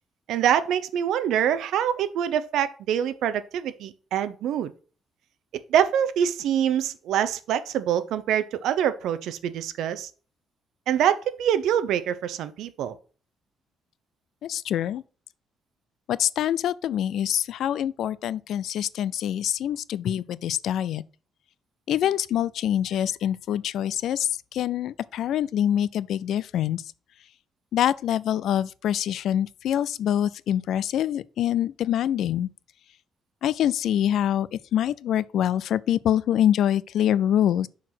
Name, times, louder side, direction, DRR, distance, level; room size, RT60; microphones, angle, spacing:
voice 1, 0.3-4.7 5.7-10.1 10.9-13.0, right 9 dB, 75° right, 0.7 m, -25 dB
voice 2, 14.4-15.0 16.1-21.0 21.9-26.8 27.7-32.5 33.4-37.7, left 10 dB, 60° left, 0.3 m, -25 dB
5.9 x 4.8 x 5.9 m
cardioid pair, 175°, 0 cm